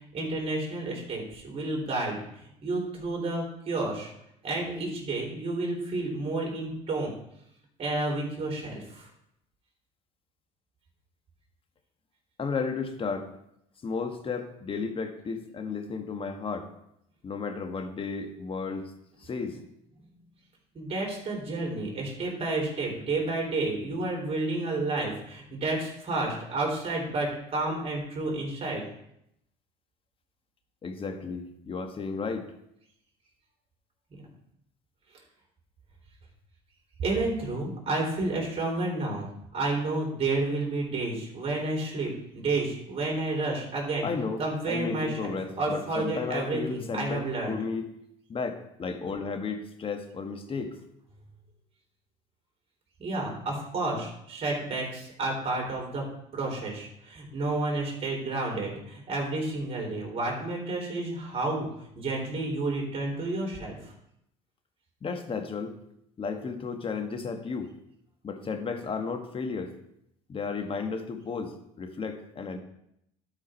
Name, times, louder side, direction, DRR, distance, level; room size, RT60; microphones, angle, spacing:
voice 1, 0.0-2.2 2.6-4.1 4.4-7.1 7.8-9.1 20.7-28.8 37.0-39.3 39.5-44.1 44.4-47.6 53.0-56.0 56.3-61.7 62.0-63.8, right 2 dB, 40° right, -2 dB, 3.6 m, -30 dB
voice 2, 12.4-13.3 13.8-16.7 17.2-18.9 19.2-19.6 30.8-32.5 44.0-47.9 48.3-50.8 65.0-65.8 66.2-67.7 68.2-69.7 70.3-72.6, left 5 dB, 35° left, 7 dB, 1.4 m, -33 dB
12.0 x 4.9 x 4.5 m, 0.77 s
supercardioid pair, 80°, 16 cm